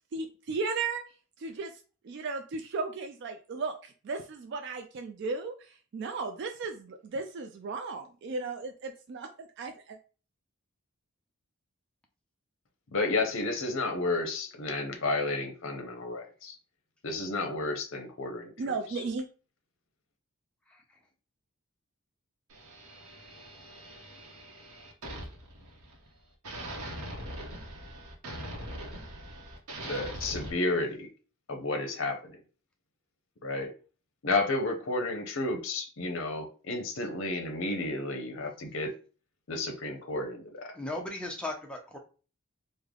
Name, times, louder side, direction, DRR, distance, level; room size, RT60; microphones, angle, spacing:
voice 1, 0.1-1.0 1.4-1.7 2.0-10.0 18.6-19.3, right 4 dB, 50° right, 5 dB, 0.3 m, -35 dB
voice 2, 12.9-16.6 17.0-18.5 18.9-19.0 29.8-31.1 31.5-32.3 33.4-33.7 34.2-38.9 39.5-40.7, left 2 dB, 60° left, 5 dB, 0.7 m, -31 dB
voice 3, 20.7-21.0 40.7-42.0, left 2 dB, 5° left, 1 dB, 0.5 m, -37 dB
sound 1, 22.5-26.1 26.4-30.5, right 1 dB, 90° right, 0.8 m, -42 dB
3.2 x 2.1 x 3.6 m, 0.36 s
head